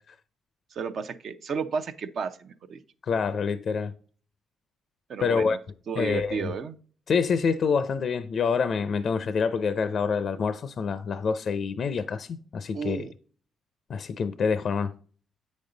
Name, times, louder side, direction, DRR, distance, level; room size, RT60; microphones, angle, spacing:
voice 1, 0.7-2.8 5.1-5.6 5.9-6.8 12.7-13.1, right 6 dB, 60° right, 0.6 m, -32 dB
voice 2, 3.1-3.9 5.2-5.6 6.0-6.5 7.1-13.1 13.9-14.9, left 5 dB, 55° left, 0.4 m, -26 dB
8.1 x 5.3 x 3.8 m
cardioid pair, 90°, 0 cm